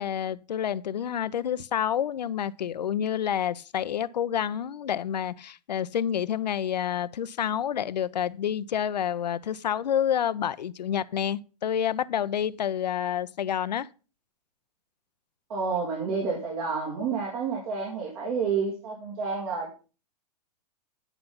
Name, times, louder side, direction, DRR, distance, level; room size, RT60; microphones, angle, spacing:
voice 1, 0.0-13.9, left 9 dB, 85° left, 0.6 m, -28 dB
voice 2, 15.5-19.9, right 5 dB, 60° right, 3.1 m, -30 dB
10.0 x 5.7 x 5.5 m
hypercardioid pair, 120°, 21 cm